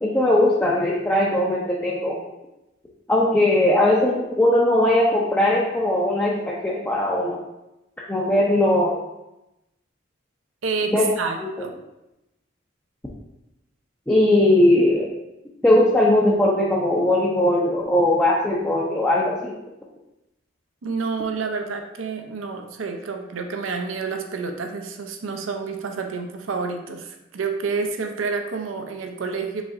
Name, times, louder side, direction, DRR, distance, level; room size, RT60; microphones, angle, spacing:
voice 1, 0.0-2.2 3.1-7.4 8.1-9.0 10.9-11.1 11.4-11.5 14.1-15.1 15.6-19.5, left 1 dB, 10° left, -5 dB, 0.5 m, -19 dB
voice 2, 10.6-11.7 20.8-29.6, right 4 dB, 75° right, 5 dB, 0.5 m, -29 dB
5.0 x 3.7 x 2.5 m, 0.92 s
head